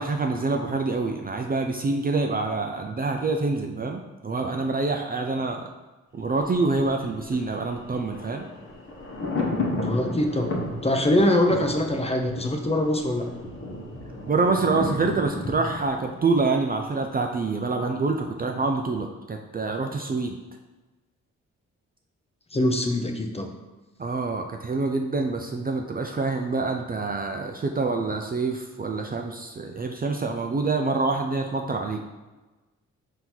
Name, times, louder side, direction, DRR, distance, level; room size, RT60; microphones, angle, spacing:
voice 1, 0.0-5.6 6.1-8.5 14.3-20.4 24.0-32.0, right 3 dB, 30° right, 3 dB, 0.4 m, -26 dB
Thunder, 6.2-17.2 17.5-17.6, left 2 dB, 40° left, 1.0 m, -34 dB
voice 2, 9.8-10.5 10.8-13.3 22.5-23.5, left 1 dB, 20° left, 4 dB, 0.6 m, -23 dB
4.3 x 2.8 x 3.8 m, 1.2 s
supercardioid pair, 55°, 33 cm